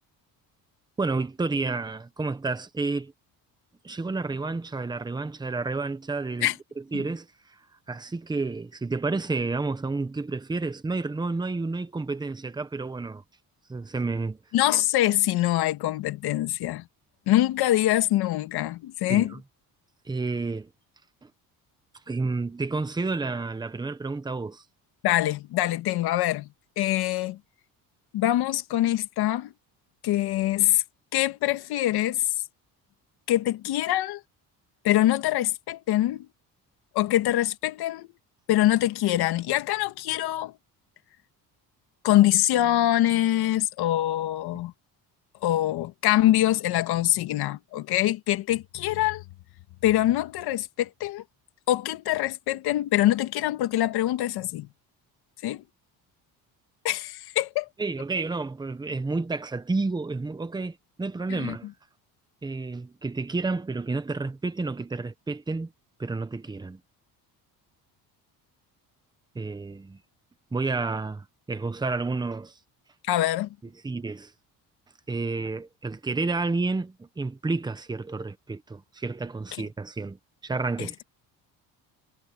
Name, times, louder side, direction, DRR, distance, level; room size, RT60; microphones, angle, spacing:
voice 1, 1.0-3.1 3.8-7.3 7.9-13.2 13.7-14.4 19.1-19.4 20.1-20.7 21.2-21.3 22.1-24.6 57.8-61.7 62.4-65.7 66.0-66.8 69.3-70.0 70.5-72.6 73.8-74.3 75.1-80.9, right 3 dB, 10° right, 1.2 m, -30 dB
voice 2, 14.5-16.8 17.3-19.3 25.0-26.5 26.8-27.4 28.1-29.5 30.0-30.8 31.1-32.2 33.3-34.2 34.8-36.3 36.9-38.1 38.5-40.5 42.0-44.7 45.4-49.2 49.8-51.2 51.7-54.7 55.4-55.6 56.8-57.7 61.3-61.6 73.1-73.5 79.6-79.7 80.8-81.0, left 14 dB, 85° left, 2.0 m, -24 dB
cardioid pair, 155°, 38 cm